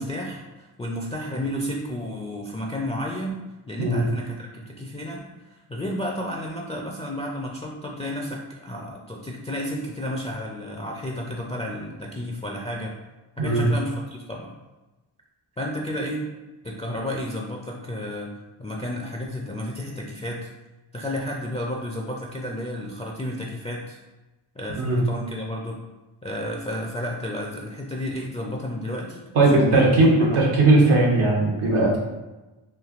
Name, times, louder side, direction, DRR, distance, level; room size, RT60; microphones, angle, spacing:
voice 1, 0.0-3.4 3.7-13.0 13.4-14.5 15.6-16.3 16.6-18.3 18.6-20.5 20.9-24.0 24.5-25.8 26.2-29.9 30.2-30.4, left 1 dB, 15° left, -2 dB, 0.3 m, -32 dB
voice 2, 29.3-32.0, right 2 dB, 80° right, -3 dB, 0.9 m, -18 dB
3.2 x 2.5 x 2.4 m, 1.1 s
cardioid pair, 40°, 49 cm